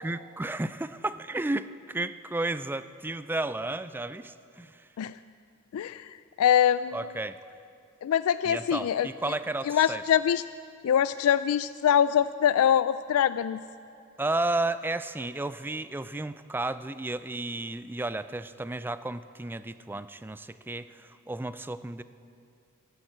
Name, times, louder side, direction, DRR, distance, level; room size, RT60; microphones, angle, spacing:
voice 1, 0.0-4.9 6.9-7.4 8.5-10.0 14.2-22.0, right 2 dB, 10° right, 13 dB, 0.3 m, -33 dB
voice 2, 5.7-7.0 8.0-9.1 9.7-10.4 10.8-13.6, left 9 dB, 85° left, 14 dB, 0.3 m, -24 dB
13.0 x 12.0 x 7.8 m, 2.5 s
head